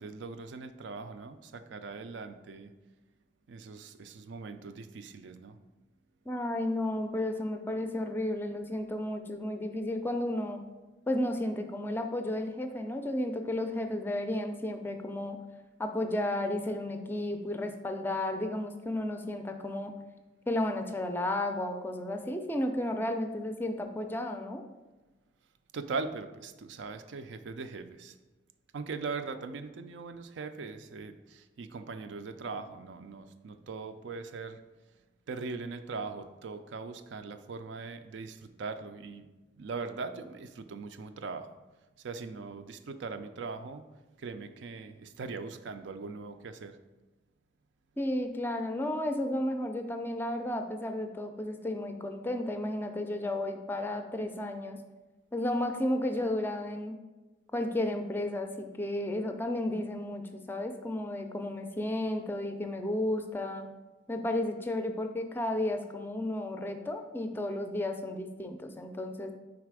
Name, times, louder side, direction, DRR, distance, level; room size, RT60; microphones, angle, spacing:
voice 1, 0.0-2.7 3.5-5.6 25.7-28.2 28.7-34.6 35.3-39.3 39.6-41.5 42.0-43.9 44.2-46.8, right 4 dB, 75° right, 10 dB, 0.4 m, -40 dB
voice 2, 6.3-10.6 11.1-15.4 15.8-19.9 20.5-24.6 48.0-54.8 55.3-57.0 57.5-63.7 64.1-69.3, left 1 dB, 10° left, 6 dB, 0.4 m, -33 dB
4.9 x 4.1 x 4.7 m, 1.2 s
head